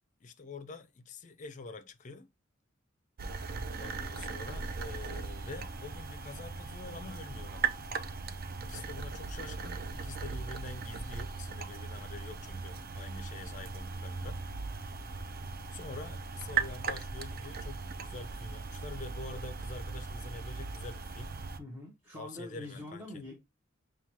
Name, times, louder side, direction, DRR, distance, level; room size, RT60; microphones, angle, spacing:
voice 1, 0.2-2.3 3.8-7.8 8.6-14.4 15.7-21.3 22.1-23.2, left 3 dB, 40° left, 0.5 m, -46 dB
sound 1, 3.2-21.6, right 5 dB, 50° right, 0.4 m, -38 dB
voice 2, 21.6-23.3, left 1 dB, 10° right, 1.0 m, -45 dB
5.8 x 2.3 x 2.9 m
head